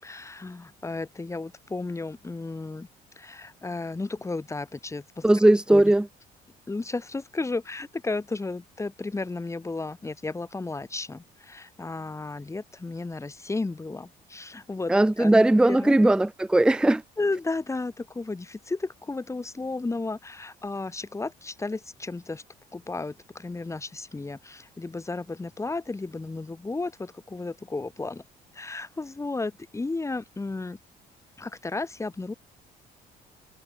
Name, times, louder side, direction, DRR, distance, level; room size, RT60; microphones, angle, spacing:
voice 1, 0.0-2.9 3.2-5.3 5.7-5.9 6.7-15.3 15.7-16.0 17.2-22.4 22.7-28.2 28.5-30.8 31.4-32.3, left 3 dB, 15° left, 5.1 m, -33 dB
voice 2, 5.2-6.0 14.9-17.0, right 1 dB, 5° right, 0.7 m, -19 dB
cardioid pair, 110°, 17 cm